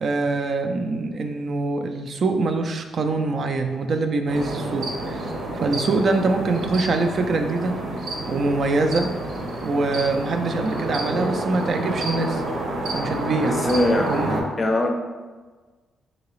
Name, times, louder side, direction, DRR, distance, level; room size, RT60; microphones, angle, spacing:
voice 1, 0.0-7.8 8.3-9.1 9.6-12.4 12.9-13.6 14.1-14.4, right 3 dB, 50° right, 5 dB, 0.4 m, -24 dB
sound 1, 4.3-14.4, right 1 dB, 80° right, 0.8 m, -29 dB
voice 2, 13.4-14.1 14.6-14.9, left 1 dB, 30° left, 3 dB, 0.5 m, -21 dB
3.8 x 2.8 x 3.1 m, 1.3 s
cardioid pair, 100°, 0 cm